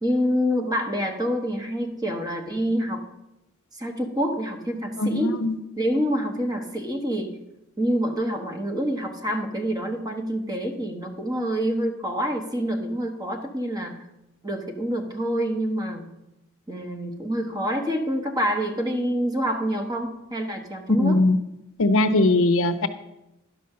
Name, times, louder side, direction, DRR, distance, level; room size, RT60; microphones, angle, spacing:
voice 1, 0.0-3.0 3.8-5.3 5.8-7.4 7.8-14.0 14.4-16.1 16.7-21.2, equal, 20° right, 4 dB, 1.2 m, -27 dB
voice 2, 5.0-5.6 20.9-21.4 21.8-22.9, left 2 dB, 65° left, 11 dB, 0.7 m, -20 dB
11.0 x 5.5 x 6.6 m, 0.91 s
head